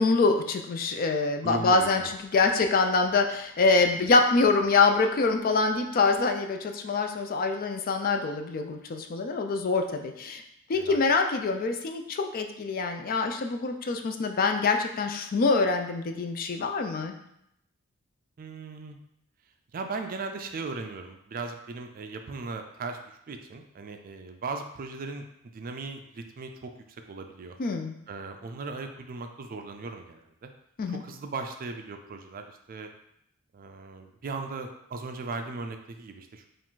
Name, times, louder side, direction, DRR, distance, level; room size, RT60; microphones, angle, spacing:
voice 1, 0.0-10.4 10.7-17.1 27.6-28.0 30.8-31.0, left 3 dB, 40° left, 5 dB, 0.4 m, -25 dB
voice 2, 1.4-2.1 10.7-11.0 18.4-19.0 19.7-23.0 23.3-25.2 25.5-26.7 27.1-27.6 28.1-30.5 30.9-32.9 33.5-36.5, right 3 dB, 40° right, 6 dB, 0.4 m, -37 dB
4.7 x 2.5 x 3.7 m, 0.77 s
head